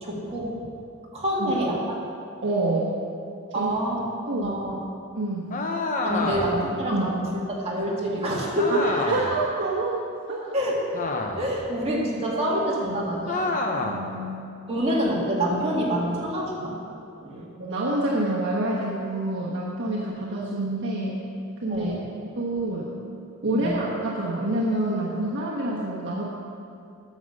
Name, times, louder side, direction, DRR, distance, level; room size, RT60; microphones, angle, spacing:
voice 1, 0.0-0.7 1.1-2.0 3.5-4.0 4.4-4.8 6.0-7.2 7.5-8.9 10.5-10.8 11.4-13.6 14.7-16.7 17.2-17.5 21.7-22.0 23.5-23.8, right 1 dB, 30° right, -4 dB, 2.0 m, -26 dB
voice 2, 2.4-2.9 3.5-3.7 4.3-4.6 5.1-5.5 6.9-7.1 8.7-10.0 10.3-10.5 13.8-14.5 17.6-21.2 21.6-21.9 22.3-22.9 23.4-26.2, right 2 dB, 55° right, -6 dB, 1.3 m, -27 dB
sound 1, 5.5-6.7 8.5-9.4 10.9-11.6 13.3-14.1, left 2 dB, 40° left, 0.9 m, -28 dB
9.6 x 7.5 x 6.5 m, 2.5 s
head